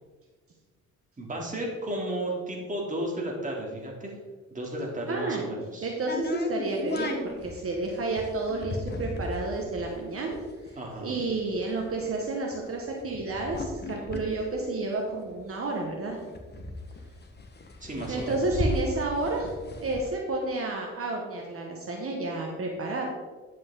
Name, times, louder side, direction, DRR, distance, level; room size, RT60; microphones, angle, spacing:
voice 1, 1.2-4.1 4.5-5.9 10.8-11.1 17.8-18.6, right 1 dB, 25° right, -1 dB, 2.9 m, -33 dB
voice 2, 5.1-5.4 5.8-10.4 10.6-16.2 18.1-19.5 19.8-23.0, right 2 dB, 50° right, 0 dB, 1.6 m, -31 dB
sound 1, 6.1-15.6 15.9-16.0 16.2-20.1, left 2 dB, 35° left, 1.5 m, -36 dB
10.5 x 7.6 x 3.8 m, 1.4 s
cardioid pair, 90°, 30 cm